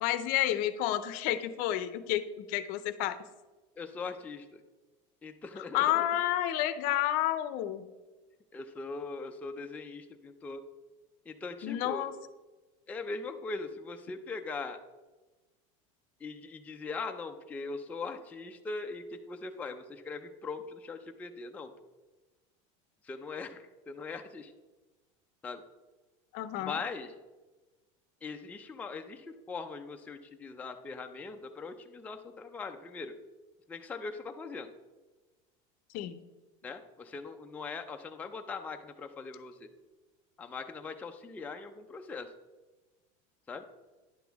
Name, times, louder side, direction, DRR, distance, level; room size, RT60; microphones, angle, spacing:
voice 1, 0.0-3.2 5.7-7.9 11.6-12.1 26.3-26.8 35.9-36.2, left 13 dB, 55° left, 12 dB, 0.6 m, -30 dB
voice 2, 3.8-4.6 5.2-6.1 8.5-10.6 11.3-12.1 12.9-14.8 16.2-21.7 23.0-24.5 25.4-25.6 26.6-27.1 28.2-33.1 33.7-34.7 36.6-39.7 40.4-42.3 43.5-43.6, left 4 dB, 10° left, 4 dB, 0.4 m, -40 dB
10.0 x 6.0 x 3.4 m, 1.2 s
supercardioid pair, 140°, 17 cm